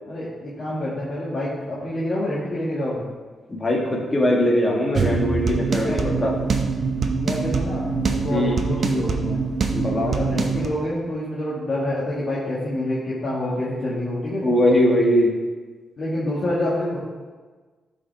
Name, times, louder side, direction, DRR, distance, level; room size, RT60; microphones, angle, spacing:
voice 1, 0.1-3.1 5.8-6.1 7.1-9.5 10.0-14.5 16.0-17.0, left 1 dB, 45° left, -9 dB, 2.1 m, -27 dB
voice 2, 3.5-6.3 8.3-8.6 9.7-10.2 14.4-15.3, left 1 dB, 20° left, -2 dB, 1.9 m, -20 dB
sound 1, 4.9-10.7, right 4 dB, 50° right, 0.8 m, -24 dB
12.5 x 5.3 x 3.5 m, 1.4 s
cardioid pair, 110°, 0 cm